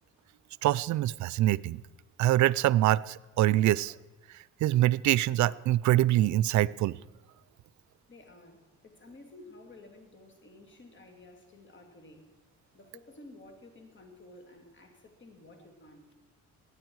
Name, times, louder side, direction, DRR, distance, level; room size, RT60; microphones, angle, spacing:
voice 1, 0.6-1.8 2.2-3.9 4.6-6.9, right 14 dB, 70° right, 21 dB, 0.4 m, -24 dB
voice 2, 8.1-12.3 12.7-16.1, left 2 dB, 40° left, 4 dB, 2.8 m, -53 dB
18.0 x 9.7 x 4.7 m, 1.2 s
cardioid pair, 90°, 30 cm